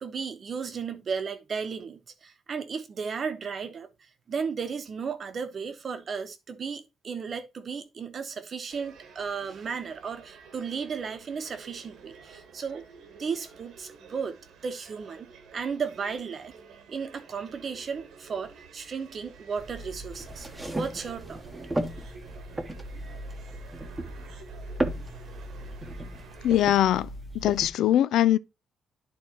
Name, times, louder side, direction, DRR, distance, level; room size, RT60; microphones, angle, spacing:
voice 1, 0.0-3.9 4.3-12.8 13.2-14.4 14.6-16.5 16.9-20.5 20.7-21.4, right 6 dB, 40° right, 0.9 m, -34 dB
sound 1, 8.7-26.8, right 5 dB, 75° right, 1.2 m, -51 dB
sound 2, 19.6-27.7, right 1 dB, 10° right, 0.9 m, -36 dB
voice 2, 26.4-28.4, left 12 dB, 75° left, 0.3 m, -22 dB
11.0 x 3.8 x 2.9 m
cardioid pair, 145°, 0 cm